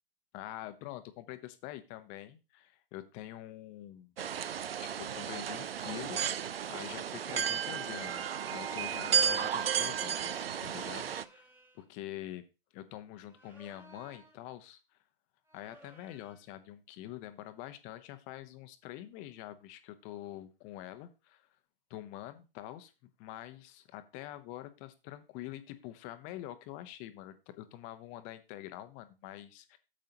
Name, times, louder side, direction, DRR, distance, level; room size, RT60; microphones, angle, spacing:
voice 1, 0.3-4.1 4.8-11.5 11.7-12.4 12.7-14.8 15.5-21.5 21.9-29.8, left 14 dB, 25° left, 11 dB, 0.8 m, -46 dB
sound 1, 4.2-11.2, right 8 dB, 75° right, 0.7 m, -33 dB
sound 2, 8.5-9.4 10.8-11.9 13.2-14.5 15.5-16.5, right 1 dB, 5° right, 1.3 m, -58 dB
9.2 x 7.5 x 2.8 m, 0.29 s
hypercardioid pair, 130°, 30 cm